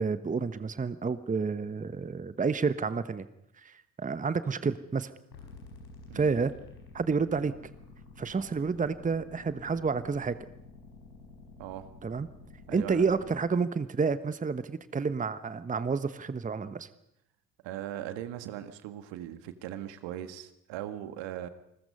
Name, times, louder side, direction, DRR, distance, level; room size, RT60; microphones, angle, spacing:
voice 1, 0.0-3.3 3.6-5.1 6.1-6.5 6.9-7.5 8.2-10.4 12.0-12.3 12.7-16.9, right 5 dB, 15° right, 13 dB, 1.1 m, -30 dB
sound 1, 5.3-13.3, left 3 dB, 85° left, 5.2 m, -50 dB
voice 2, 12.7-13.1 17.6-21.5, right 12 dB, 60° right, 10 dB, 1.8 m, -39 dB
28.5 x 20.5 x 5.5 m, 0.80 s
figure-of-eight pair, 55°, 50 cm